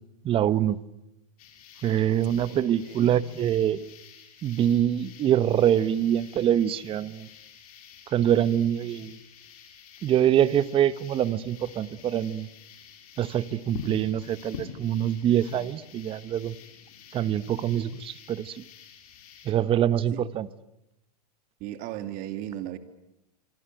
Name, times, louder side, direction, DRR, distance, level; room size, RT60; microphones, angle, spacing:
voice 1, 0.2-0.8 1.8-3.9 4.4-7.3 8.1-9.2 10.0-12.5 13.2-16.6 17.1-18.6 19.4-20.5, right 10 dB, 25° right, 1.1 m, -24 dB
sound 1, 1.4-19.5, left 8 dB, 65° left, 6.4 m, -48 dB
voice 2, 2.8-3.2 20.1-20.2 21.6-22.8, right 13 dB, 45° right, 2.8 m, -36 dB
25.5 x 25.5 x 9.2 m
hypercardioid pair, 120°, 20 cm